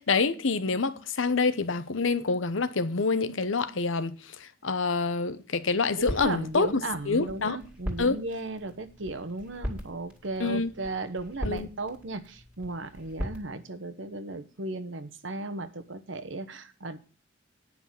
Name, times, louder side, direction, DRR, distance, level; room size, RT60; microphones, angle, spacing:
voice 1, 0.0-7.6 8.0-8.2 10.4-10.7 11.4-11.7, left 4 dB, 80° left, 0.9 m, -27 dB
sound 1, 6.0-13.4, equal, 5° right, 2.2 m, -40 dB
voice 2, 6.0-17.0, right 2 dB, 70° right, 1.1 m, -36 dB
9.7 x 6.0 x 7.3 m
head